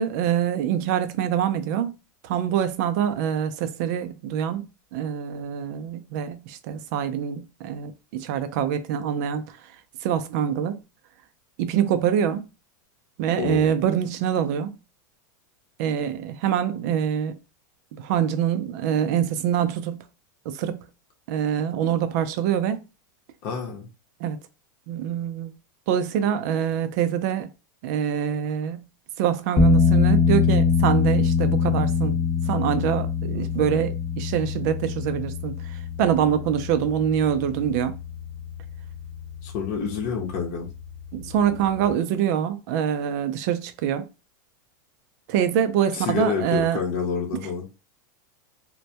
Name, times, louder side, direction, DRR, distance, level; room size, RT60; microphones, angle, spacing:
voice 1, 0.0-1.9 2.2-9.4 10.0-10.8 11.6-12.5 13.2-14.8 15.8-17.4 17.9-20.0 20.5-20.8 21.3-22.8 24.2-24.4 24.9-25.5 25.9-27.5 27.8-28.8 29.2-32.2 32.5-38.0 41.1-44.1 45.3-46.8, right 9 dB, 60° right, 0.4 m, -25 dB
voice 2, 13.4-13.7 23.4-23.9 39.4-40.7 45.9-47.7, left 6 dB, 50° left, 0.7 m, -28 dB
sound 1, 29.6-41.9, left 6 dB, 20° left, 0.4 m, -25 dB
2.1 x 2.1 x 2.7 m
supercardioid pair, 140°, 10 cm